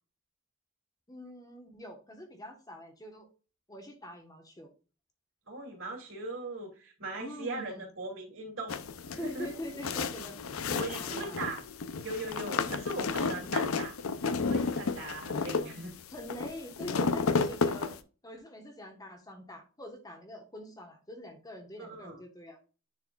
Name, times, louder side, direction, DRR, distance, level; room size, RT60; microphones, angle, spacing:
voice 1, 1.1-3.3 3.7-4.7 7.2-7.9 9.2-10.4 10.7-11.4 15.3-17.9 18.2-22.6, left 1 dB, 15° left, 4 dB, 1.3 m, -45 dB
voice 2, 5.5-8.8 9.1-9.5 10.8-11.6 12.0-14.0 14.3-15.9 21.8-22.2, right 2 dB, 65° right, 0 dB, 3.0 m, -39 dB
sound 1, 8.7-18.0, left 4 dB, 80° left, 0.6 m, -32 dB
10.5 x 4.7 x 2.4 m, 0.35 s
head